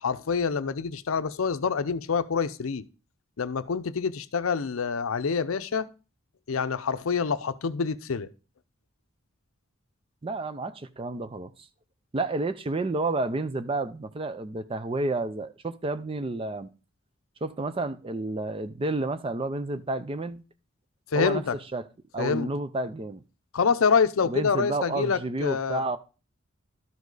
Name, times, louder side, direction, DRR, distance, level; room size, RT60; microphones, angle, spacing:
voice 1, 0.0-2.8 3.4-5.9 6.5-8.3 21.1-21.6 22.2-22.5 23.5-25.8, left 5 dB, 80° left, 0.5 m, -26 dB
voice 2, 10.2-11.5 12.1-16.7 17.4-20.4 21.1-21.4 21.7-21.9 22.1-23.2 24.2-26.0, right 2 dB, 25° right, 0.4 m, -30 dB
12.0 x 5.1 x 3.9 m
head